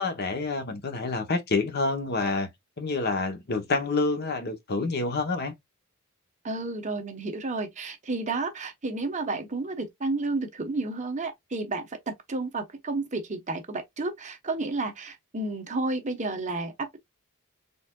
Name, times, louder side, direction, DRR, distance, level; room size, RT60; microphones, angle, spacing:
voice 1, 0.0-2.5 2.8-5.5, left 3 dB, 50° left, 0.9 m, -28 dB
voice 2, 6.4-17.0, right 3 dB, 35° right, 0.9 m, -31 dB
4.2 x 3.4 x 2.3 m
head